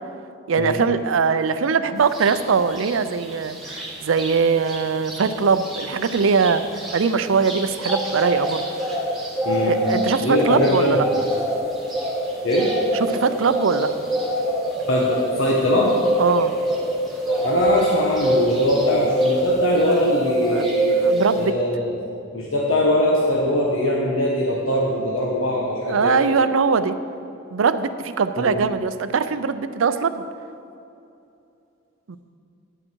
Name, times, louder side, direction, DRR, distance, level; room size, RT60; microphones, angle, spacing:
voice 1, 0.5-6.6 6.9-8.7 9.6-11.1 13.2-13.9 16.2-16.5 20.5-21.5 25.8-26.9 27.5-30.2 32.1-32.2, right 5 dB, 80° right, 12 dB, 0.5 m, -21 dB
sound 1, 2.1-2.3 2.7-4.3 4.6-4.8 5.0-20.1 20.3-21.4, right 1 dB, ahead, 1.8 m, -24 dB
voice 2, 9.4-9.8 10.2-11.1 12.4-12.7 14.9-15.9 17.3-21.0 21.4-21.9 22.3-26.3 28.4-28.6, left 1 dB, 85° left, -3 dB, 1.1 m, -22 dB
10.0 x 8.9 x 4.6 m, 2.6 s
head